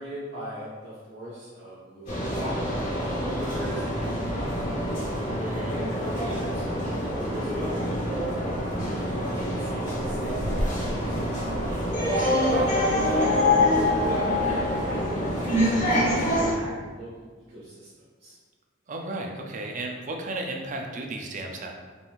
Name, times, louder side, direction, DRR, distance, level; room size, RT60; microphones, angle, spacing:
voice 1, 0.0-5.1 5.6-8.4 8.8-11.8 12.2-14.2 14.5-17.9 18.2-18.4, right 1 dB, 60° right, -11 dB, 1.3 m, -39 dB
sound 1, 2.1-16.5, left 1 dB, 40° left, 1.3 m, -26 dB
voice 2, 5.4-5.8 12.4-12.6 18.9-21.7, right 2 dB, 40° right, 2 dB, 0.5 m, -34 dB
4.0 x 3.8 x 2.4 m, 1.5 s
head